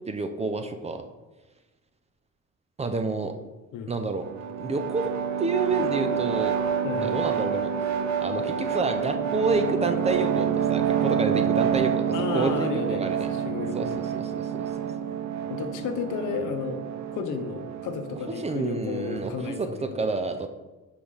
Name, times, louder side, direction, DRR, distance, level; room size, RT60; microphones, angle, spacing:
voice 1, 0.1-1.0 2.8-3.3 3.9-4.3 4.6-5.1 5.4-6.6 7.0-7.7 8.2-12.0 12.3-13.3 13.7-14.7 18.4-20.5, right 3 dB, 20° right, 7 dB, 0.5 m, -29 dB
sound 1, 4.2-19.6, right 8 dB, 65° right, 0.7 m, -28 dB
voice 2, 6.8-7.1 12.1-14.1 15.5-16.8 17.1-20.0, left 6 dB, 85° left, 7 dB, 0.9 m, -33 dB
5.2 x 4.9 x 5.5 m, 1.1 s
cardioid pair, 145°, 30 cm